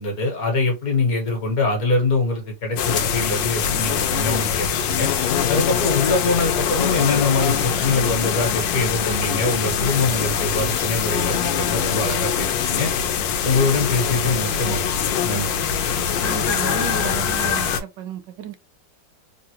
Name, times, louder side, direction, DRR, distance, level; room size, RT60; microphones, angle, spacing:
voice 1, 0.0-5.1 5.5-12.9 13.4-15.5, left 3 dB, 55° left, 1.4 m, -23 dB
sound 1, 2.8-17.8, left 7 dB, 90° left, 1.3 m, -23 dB
voice 2, 16.2-18.6, right 9 dB, 80° right, 1.2 m, -33 dB
3.6 x 2.0 x 2.8 m
omnidirectional pair, 2.0 m